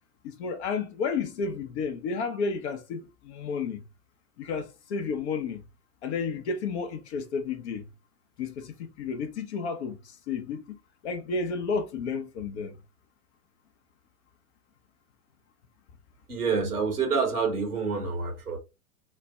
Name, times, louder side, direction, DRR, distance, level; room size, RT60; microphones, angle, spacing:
voice 1, 0.2-3.8 4.4-5.6 6.0-7.9 8.4-10.8 11.0-12.8, left 5 dB, 50° left, 0.7 m, -32 dB
voice 2, 16.3-18.6, right 5 dB, 90° right, 1.2 m, -27 dB
4.0 x 2.2 x 3.2 m
figure-of-eight pair, 95°, 45 cm